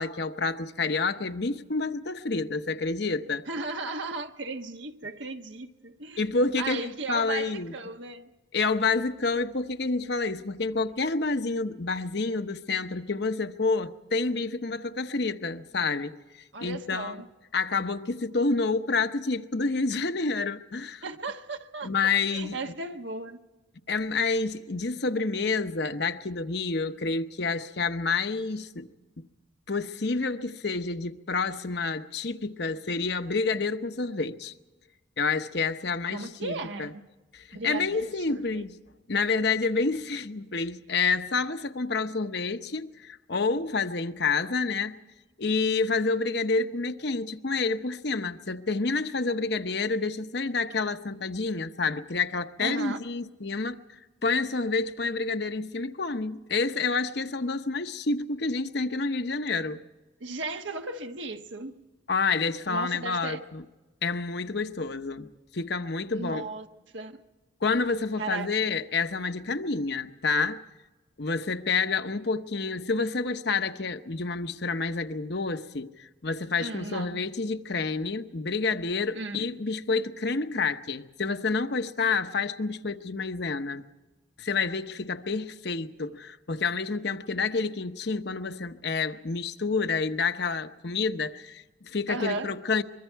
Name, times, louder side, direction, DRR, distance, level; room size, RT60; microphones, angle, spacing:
voice 1, 0.0-3.4 6.2-6.8 7.1-7.7 8.5-16.2 16.6-17.2 17.5-21.0 21.8-22.6 23.9-28.9 29.7-34.5 35.2-36.9 37.3-38.8 39.1-45.0 45.4-59.8 62.1-63.6 64.0-66.5 67.6-70.6 71.2-83.8 84.4-92.8, left 4 dB, 55° left, 0.9 m, -29 dB
voice 2, 3.5-6.2 6.6-8.3 16.5-17.3 21.0-23.4 36.1-37.0 37.5-38.6 52.6-53.0 60.2-61.7 62.7-63.4 66.1-66.7 66.9-67.2 68.2-68.5 76.6-77.2 79.1-79.5 92.1-92.5, right 3 dB, 65° right, 1.3 m, -36 dB
24.5 x 23.0 x 4.6 m
head